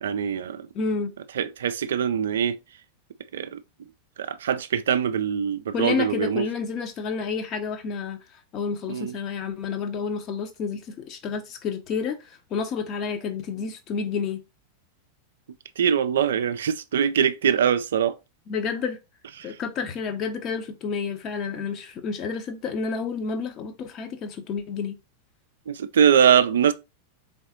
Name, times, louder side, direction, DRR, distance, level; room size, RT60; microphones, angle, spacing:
voice 1, 0.0-0.7 1.4-2.6 3.3-3.6 4.2-6.5 8.9-9.1 15.8-18.2 19.4-19.6 25.7-26.7, right 8 dB, 65° right, 0.3 m, -22 dB
voice 2, 0.7-1.1 5.7-8.2 8.5-14.4 18.5-19.0 19.4-25.0, left 5 dB, 35° left, 0.7 m, -30 dB
3.9 x 3.4 x 2.7 m
figure-of-eight pair, 90°, 0 cm